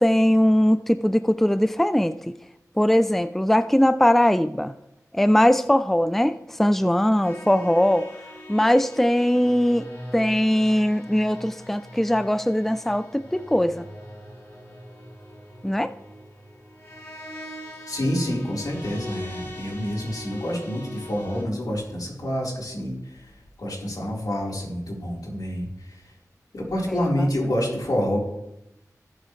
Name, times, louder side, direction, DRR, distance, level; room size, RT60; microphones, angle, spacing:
voice 1, 0.0-2.3 2.8-4.7 5.1-8.1 8.5-9.9 10.1-13.9 15.6-15.9 26.9-27.3, equal, 5° left, 12 dB, 0.4 m, -20 dB
sound 1, 7.2-21.4, left 1 dB, 35° left, 5.0 m, -42 dB
voice 2, 17.9-23.3 23.6-26.1 26.5-28.2, equal, 80° left, -3 dB, 4.1 m, -28 dB
18.5 x 7.5 x 3.2 m, 0.86 s
wide cardioid pair, 70°, 6 cm